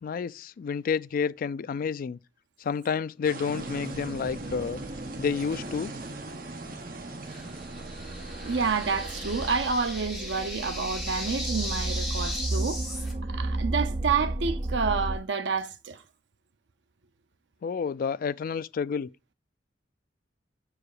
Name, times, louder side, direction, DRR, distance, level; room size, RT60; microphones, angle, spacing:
voice 1, 0.0-2.2 2.6-4.8 5.2-5.9 17.6-19.1, left 6 dB, 50° left, 0.3 m, -30 dB
sound 1, 3.2-9.6, right 2 dB, 50° right, 1.1 m, -42 dB
sound 2, 3.5-15.2, right 2 dB, 35° right, 0.6 m, -34 dB
sound 3, 7.3-13.1, left 1 dB, ahead, 3.7 m, -38 dB
voice 2, 8.4-12.8 13.3-16.0, right 5 dB, 70° right, 0.6 m, -29 dB
6.0 x 4.8 x 4.8 m
head